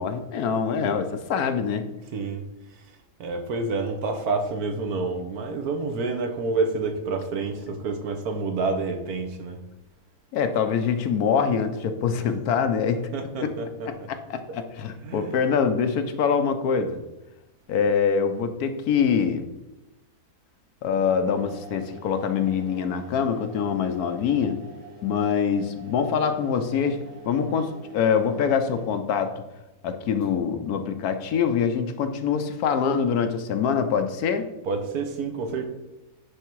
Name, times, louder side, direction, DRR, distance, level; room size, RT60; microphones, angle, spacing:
voice 1, 0.0-1.9 7.7-7.8 10.3-13.1 13.4-13.6 13.9-17.0 17.7-19.5 20.8-24.6 25.0-29.4 29.8-34.5, left 6 dB, 75° left, 8 dB, 1.2 m, -24 dB
voice 2, 2.1-2.4 3.2-9.6 12.2-12.3 13.1-13.9 15.0-15.4 34.7-35.7, right 3 dB, 70° right, 6 dB, 1.4 m, -28 dB
sound 1, 20.8-29.2 30.2-30.3, right 2 dB, 45° right, 2.2 m, -46 dB
9.9 x 3.6 x 4.6 m, 0.99 s
omnidirectional pair, 1.7 m